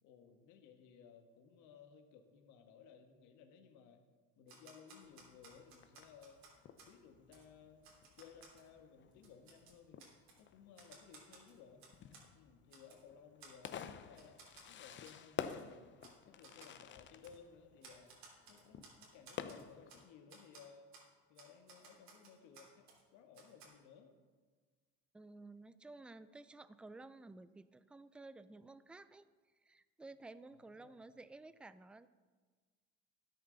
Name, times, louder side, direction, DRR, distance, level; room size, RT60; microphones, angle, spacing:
voice 1, 0.0-4.0 4.4-6.4 6.8-7.9 8.2-10.1 10.4-11.8 12.3-14.4 14.7-16.0 16.3-18.1 18.5-20.9 21.3-22.9 23.1-24.1 30.5-31.0, left 7 dB, 75° left, 5 dB, 1.5 m, -60 dB
Typewriter, 4.5-6.9 7.3-7.4 7.8-8.7 9.1-10.4 10.7-12.3 12.7-13.0 13.4-13.9 14.1-14.7 15.0-15.2 15.5-15.6 16.0-16.2 16.4-16.7 17.2-17.4 17.8-20.0 20.3-20.6 20.9-21.1 21.3-23.0 23.3-23.7, right 4 dB, 60° right, 3.5 m, -59 dB
Fireworks, 5.0-20.0, left 8 dB, 40° left, 0.7 m, -51 dB
voice 2, 25.1-29.3 29.6-32.1, right 2 dB, 5° right, 14 dB, 0.3 m, -54 dB
13.0 x 10.0 x 4.0 m, 1.5 s
supercardioid pair, 105°, 30 cm